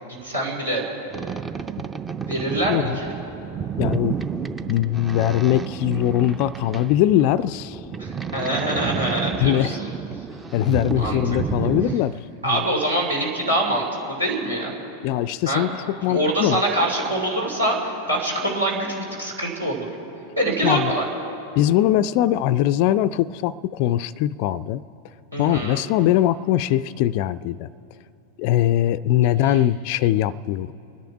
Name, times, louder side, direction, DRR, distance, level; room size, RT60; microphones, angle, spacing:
voice 1, 0.2-0.8 2.2-3.1 8.0-9.9 11.0-11.2 12.4-14.8 15.5-15.7 16.1-19.9 20.4-21.1 25.3-25.8 29.4-29.6, right 1 dB, 80° right, 3.2 m, -24 dB
Boat Water vehicle, 1.1-11.9, right 6 dB, 15° right, 0.5 m, -30 dB
voice 2, 2.7-3.0 3.8-4.2 4.7-7.8 9.4-9.8 10.5-12.7 15.0-16.6 20.6-20.9 21.6-24.8 25.4-27.7 28.4-30.7, left 12 dB, 45° left, 0.3 m, -21 dB
29.0 x 10.5 x 4.6 m
figure-of-eight pair, 90°, 0 cm